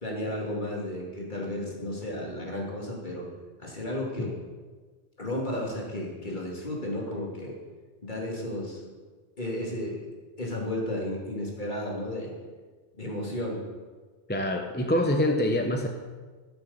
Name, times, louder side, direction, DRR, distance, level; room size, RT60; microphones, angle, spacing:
voice 1, 0.0-3.2 3.6-4.3 5.2-7.6 8.0-8.8 9.4-10.0 10.4-12.3 12.9-13.6, left 1 dB, 45° left, -3 dB, 2.7 m, -33 dB
voice 2, 14.3-15.9, left 1 dB, 10° left, 3 dB, 0.8 m, -25 dB
13.0 x 6.9 x 7.1 m, 1.4 s
omnidirectional pair, 1.1 m